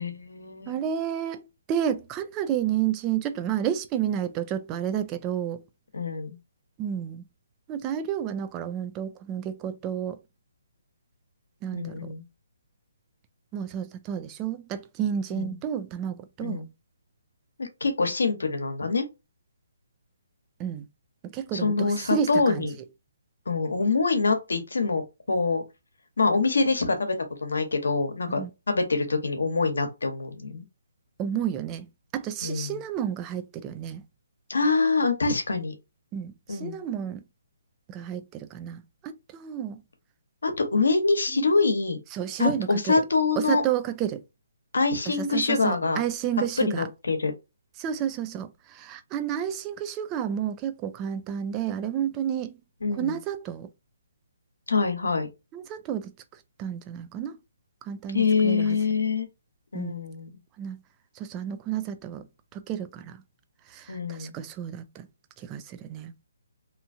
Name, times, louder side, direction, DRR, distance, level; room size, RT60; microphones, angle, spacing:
voice 1, 0.0-0.8 5.9-6.4 11.7-12.2 15.3-15.5 16.4-16.7 17.6-19.0 21.5-22.8 23.5-25.6 26.2-27.1 27.4-30.6 32.4-32.8 34.5-35.7 36.5-36.8 40.4-42.0 42.4-43.6 44.7-46.0 46.6-47.3 52.8-53.2 54.7-55.3 58.1-59.3 59.7-60.3 63.9-64.3, left 4 dB, 85° left, 1.0 m, -25 dB
voice 2, 0.7-5.6 6.8-7.2 7.7-10.2 11.6-12.1 13.5-16.6 20.6-20.9 21.2-22.7 28.3-28.5 31.2-34.0 36.1-37.2 37.9-39.8 41.3-41.5 42.1-42.9 43.4-44.2 45.1-46.9 47.8-52.6 52.9-53.7 55.5-56.1 56.6-57.4 57.8-58.8 59.7-60.0 60.6-60.8 61.2-62.3 62.5-63.2 63.7-65.1 65.4-66.1, right 9 dB, 15° right, 0.3 m, -31 dB
2.8 x 2.4 x 2.6 m
hypercardioid pair, 165°, 0 cm